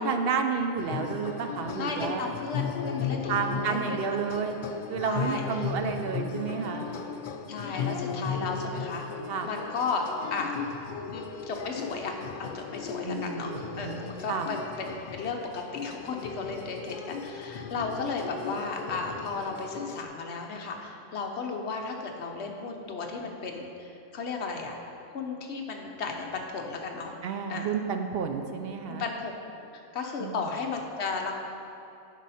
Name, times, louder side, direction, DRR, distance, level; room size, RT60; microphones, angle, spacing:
voice 1, 0.0-2.3 3.3-4.6 4.9-6.9 7.7-8.5 9.3-9.5 13.0-14.5 27.2-29.1 30.2-30.5, right 6 dB, 60° right, 5 dB, 0.7 m, -31 dB
sound 1, 0.8-20.0, left 6 dB, 75° left, 0.4 m, -36 dB
voice 2, 1.8-4.3 5.0-5.7 6.5-6.8 7.5-9.1 9.4-10.0 10.3-10.6 11.1-12.1 12.4-24.8 25.1-27.1 27.5-27.7 28.9-29.3 29.7-31.3, left 4 dB, 60° left, 2 dB, 1.1 m, -34 dB
9.3 x 5.5 x 4.2 m, 2.8 s
omnidirectional pair, 1.3 m